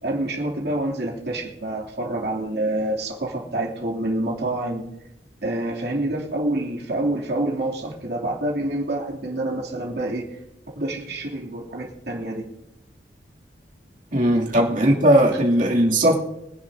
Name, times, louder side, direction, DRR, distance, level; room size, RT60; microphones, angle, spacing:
voice 1, 0.0-4.8 5.4-10.2 10.7-12.5, right 1 dB, 65° right, -2 dB, 2.9 m, -27 dB
voice 2, 14.1-16.2, right 1 dB, 50° right, -3 dB, 2.7 m, -18 dB
24.5 x 10.5 x 2.7 m, 0.86 s
head